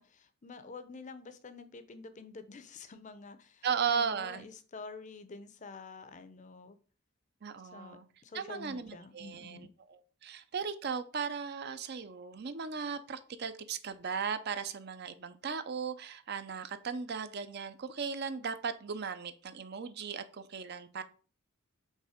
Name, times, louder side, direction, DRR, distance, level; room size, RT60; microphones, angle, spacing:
voice 1, 0.0-6.8 7.7-9.7, left 4 dB, 35° left, 11 dB, 0.6 m, -48 dB
voice 2, 3.6-4.5 7.4-8.0 8.3-21.0, right 6 dB, 50° right, 12 dB, 0.5 m, -37 dB
5.4 x 3.6 x 5.0 m, 0.39 s
head